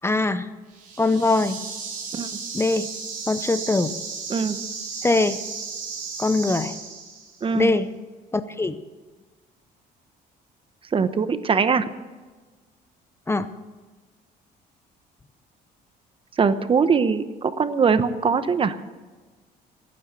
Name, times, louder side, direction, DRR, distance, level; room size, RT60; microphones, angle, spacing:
voice 1, 0.0-0.5 1.0-1.6 2.5-2.9 3.3-4.0 4.9-5.4 6.2-6.7 7.5-7.9 8.3-8.8 13.3-13.5, left 3 dB, 15° left, 12 dB, 0.7 m, -22 dB
sound 1, 0.7-7.4, right 5 dB, 50° right, 4.0 m, -34 dB
voice 2, 7.4-7.7 10.9-11.9 16.4-18.8, right 5 dB, 30° right, 12 dB, 0.9 m, -21 dB
16.5 x 9.6 x 6.9 m, 1.3 s
cardioid pair, 110°, 17 cm